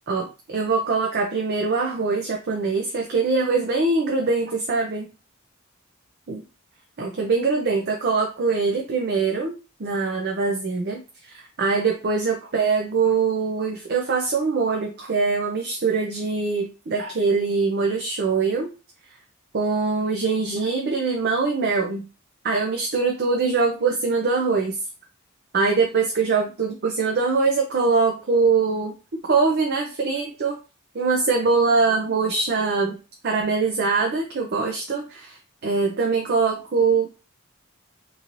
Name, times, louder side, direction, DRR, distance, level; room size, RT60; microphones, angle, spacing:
voice 1, 0.1-5.1 6.3-6.4 7.0-18.7 19.5-22.0 22.4-24.8 25.5-28.9 29.3-30.6 30.9-33.0 33.2-37.1, right 4 dB, 50° right, 1 dB, 0.5 m, -23 dB
3.0 x 2.8 x 2.5 m, 0.31 s
head